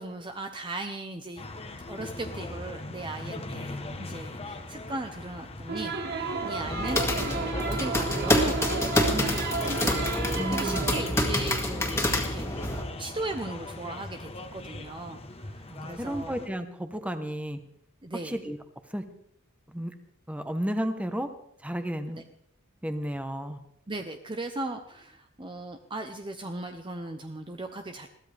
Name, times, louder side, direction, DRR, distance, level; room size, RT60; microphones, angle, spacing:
voice 1, 0.0-1.4 1.9-12.0 12.3-12.5 13.0-16.4 18.0-18.4 22.2-22.3 23.9-28.1, right 2 dB, 20° right, 5 dB, 0.8 m, -37 dB
sound 1, 1.4-16.5, left 2 dB, 30° left, 1.2 m, -40 dB
sound 2, 5.7-11.2, right 4 dB, 50° right, 1.4 m, -33 dB
sound 3, 6.6-12.8, left 1 dB, 10° left, 2.2 m, -27 dB
voice 2, 10.4-10.9 15.7-17.6 18.2-18.6 18.9-19.0 19.7-19.9 20.3-21.3 21.6-22.2 22.8-23.6, equal, 5° right, 8 dB, 1.1 m, -32 dB
21.5 x 15.5 x 3.5 m, 0.71 s
head